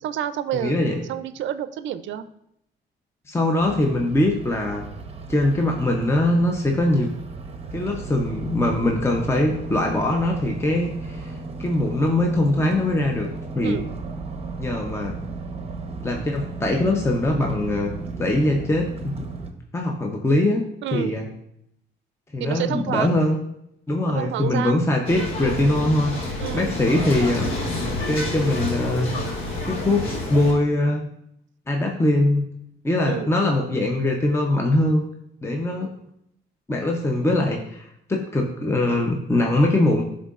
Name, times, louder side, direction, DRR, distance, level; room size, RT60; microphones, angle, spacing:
voice 1, 0.0-2.3 13.6-13.9 20.8-21.2 22.4-23.2 24.1-24.8 26.4-26.8 33.1-33.3, right 10 dB, 70° right, 12 dB, 0.4 m, -29 dB
voice 2, 0.5-1.0 3.3-4.9 5.3-7.1 7.7-13.3 13.5-13.8 14.6-15.1 16.0-17.9 18.2-19.3 19.7-20.6 20.9-21.3 22.3-23.4 23.9-27.5 28.1-29.1 29.6-31.1 31.7-32.4 32.8-35.0 35.4-36.0 36.7-40.0, left 1 dB, 15° left, 1 dB, 0.7 m, -22 dB
sound 1, 3.6-19.5, right 3 dB, 30° right, 0.8 m, -35 dB
sound 2, 25.0-30.5, left 1 dB, 90° left, 1.3 m, -28 dB
11.0 x 3.7 x 2.4 m, 0.76 s
cardioid pair, 90°, 20 cm